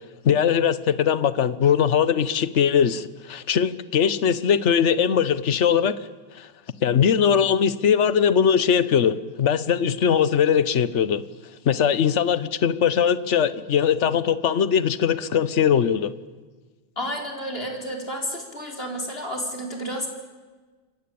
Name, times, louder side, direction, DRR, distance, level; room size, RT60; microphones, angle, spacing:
voice 1, 0.2-5.9 6.4-6.5 6.8-11.2 11.6-16.1, left 8 dB, 50° left, 15 dB, 0.8 m, -20 dB
voice 2, 17.0-20.1, equal, 25° left, 2 dB, 4.9 m, -31 dB
28.5 x 22.5 x 8.6 m, 1.3 s
omnidirectional pair, 2.4 m